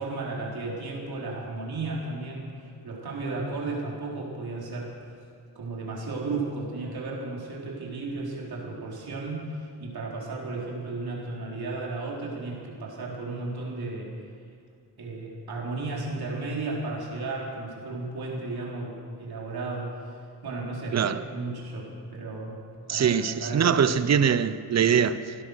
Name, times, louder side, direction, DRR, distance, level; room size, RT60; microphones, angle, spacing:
voice 1, 0.0-4.9 5.6-14.1 15.0-19.9 20.4-22.6 22.9-23.8, right 3 dB, 60° right, 4.0 m, -34 dB
voice 2, 22.9-25.3, right 7 dB, 40° right, 0.8 m, -23 dB
17.5 x 12.0 x 6.4 m
cardioid pair, 70°, 42 cm